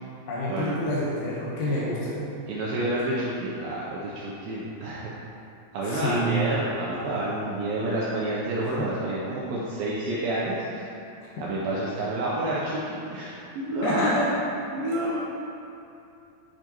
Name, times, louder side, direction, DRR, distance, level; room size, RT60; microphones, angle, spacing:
voice 1, 0.3-2.2 5.9-6.5 13.8-14.3, equal, 70° left, -7 dB, 1.5 m, -27 dB
voice 2, 2.5-5.1 5.7-11.1 11.4-14.4 14.7-15.2, right 1 dB, 80° right, -6 dB, 2.1 m, -29 dB
11.5 x 5.0 x 3.0 m, 2.6 s
omnidirectional pair, 4.7 m